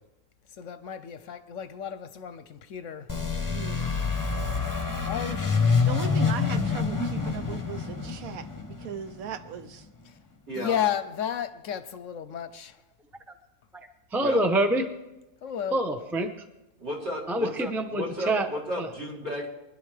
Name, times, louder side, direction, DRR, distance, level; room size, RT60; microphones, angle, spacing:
voice 1, 0.5-3.1 4.1-6.3 10.1-10.2 10.5-12.8 15.4-15.8, left 9 dB, 65° left, 0.9 m, -34 dB
sound 1, 3.1-9.7, left 5 dB, 15° left, 1.0 m, -27 dB
voice 2, 3.5-4.0 5.8-9.9, right 9 dB, 80° right, 1.1 m, -38 dB
voice 3, 10.5-10.8 14.2-14.4 16.8-17.5 17.9-19.5, equal, 50° right, 3.7 m, -33 dB
voice 4, 14.1-14.9 15.7-16.3 17.3-18.5 18.8-18.9, right 1 dB, ahead, 0.5 m, -26 dB
24.0 x 11.5 x 3.3 m
omnidirectional pair, 1.5 m